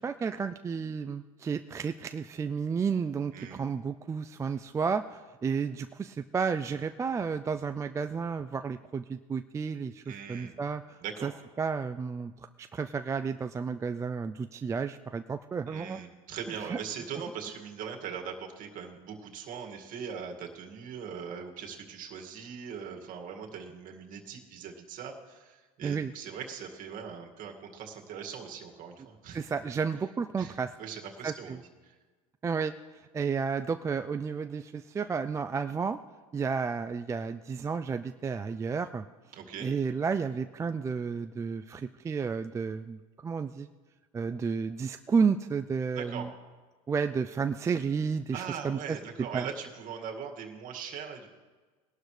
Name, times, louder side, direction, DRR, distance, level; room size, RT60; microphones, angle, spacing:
voice 1, 0.0-11.3 11.6-16.0 16.7-16.8 25.8-26.1 29.3-30.7 31.2-31.6 32.4-36.0 36.3-39.0 39.6-43.7 44.1-46.3 46.9-49.5, right 5 dB, 15° right, 9 dB, 0.4 m, -32 dB
voice 2, 3.3-3.6 10.1-10.6 11.0-11.3 15.7-29.4 30.4-31.6 31.8-31.9 39.3-39.7 46.0-46.3 48.3-51.3, right 7 dB, 45° right, 2 dB, 2.1 m, -41 dB
20.0 x 12.0 x 3.3 m, 1.3 s
hypercardioid pair, 95°, 19 cm